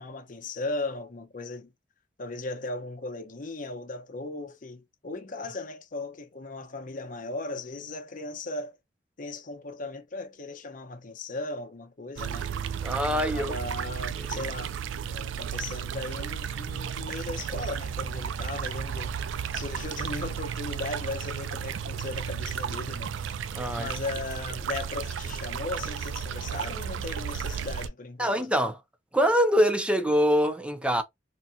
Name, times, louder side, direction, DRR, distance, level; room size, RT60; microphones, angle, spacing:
voice 1, 0.0-1.7 2.2-8.8 9.2-12.5 13.1-14.7 15.0-19.2 19.5-23.4 23.8-28.4, left 2 dB, 45° left, 0.8 m, -37 dB
sound 1, 12.2-27.9, right 7 dB, 80° right, 0.3 m, -33 dB
voice 2, 12.8-13.5 14.2-14.4 23.5-23.9 28.2-28.8 29.1-31.0, equal, 5° right, 0.5 m, -24 dB
4.1 x 2.6 x 2.2 m
head